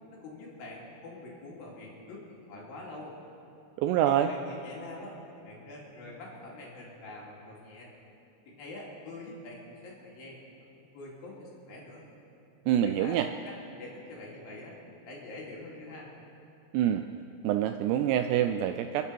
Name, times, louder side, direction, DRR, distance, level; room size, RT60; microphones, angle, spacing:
voice 1, 0.1-3.2 4.1-7.9 8.5-10.4 10.7-12.0 12.8-13.2 13.5-14.8 15.1-16.1, left 2 dB, 55° left, -4 dB, 4.1 m, -45 dB
voice 2, 3.8-4.3 12.7-13.3 16.7-17.0 17.4-19.0, right 11 dB, 85° right, 8 dB, 2.5 m, -26 dB
28.5 x 10.5 x 4.6 m, 2.7 s
omnidirectional pair, 5.2 m